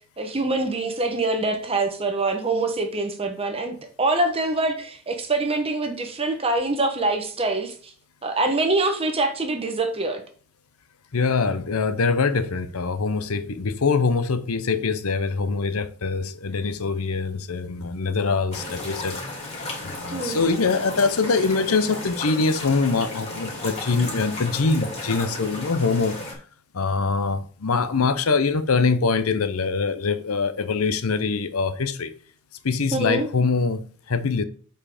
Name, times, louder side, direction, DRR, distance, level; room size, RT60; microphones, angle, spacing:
voice 1, 0.2-7.9 8.2-10.2 20.1-20.4 32.9-33.3, right 2 dB, 25° right, 1.0 m, -24 dB
voice 2, 11.1-19.2 19.8-26.2 26.7-32.1 32.6-33.8 34.1-34.4, left 4 dB, 80° left, 0.8 m, -23 dB
sound 1, 18.5-26.3, left 2 dB, 30° left, 2.7 m, -34 dB
7.5 x 4.7 x 4.9 m
head